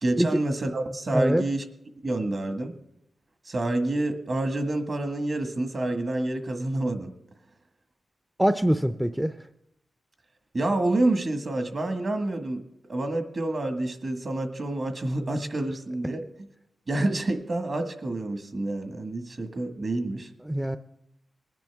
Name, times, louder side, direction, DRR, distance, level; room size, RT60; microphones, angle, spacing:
voice 1, 0.0-1.6 2.0-2.7 3.5-7.1 10.5-12.6 12.9-16.2 16.9-20.3, right 2 dB, 50° right, 6 dB, 1.7 m, -28 dB
voice 2, 8.4-9.3 20.4-20.8, equal, 5° right, 9 dB, 0.5 m, -23 dB
20.5 x 10.5 x 3.6 m, 0.81 s
cardioid pair, 80°, 0 cm